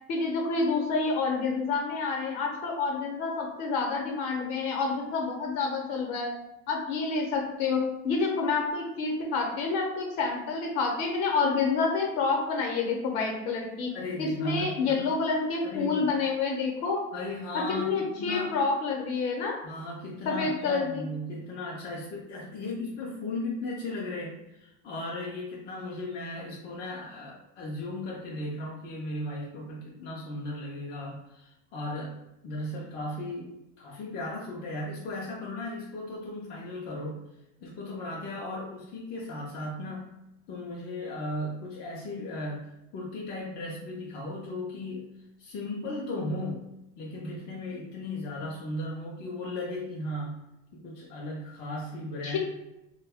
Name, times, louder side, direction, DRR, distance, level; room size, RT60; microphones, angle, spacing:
voice 1, 0.1-6.3 6.7-13.9 14.2-17.0 17.8-19.6 20.2-21.0 52.2-52.4, left 4 dB, 55° left, 0 dB, 0.8 m, -28 dB
voice 2, 13.9-15.1 15.6-16.1 17.1-18.6 19.6-32.2 32.4-37.2 37.6-40.1 40.5-45.1 45.4-46.6 47.0-50.4 50.7-52.4, left 1 dB, 35° left, -4 dB, 0.4 m, -36 dB
2.7 x 2.2 x 3.4 m, 0.90 s
cardioid pair, 170°, 30 cm